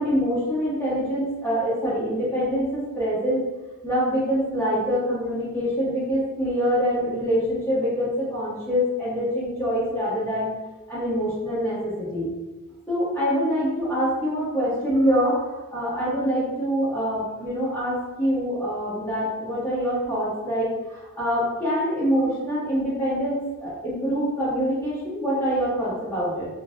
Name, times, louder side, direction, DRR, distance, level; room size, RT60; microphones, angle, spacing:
voice 1, 0.0-3.4 3.8-10.5 10.9-12.3 12.9-26.5, equal, 10° left, -12 dB, 0.9 m, -25 dB
3.2 x 2.0 x 2.6 m, 1.1 s
head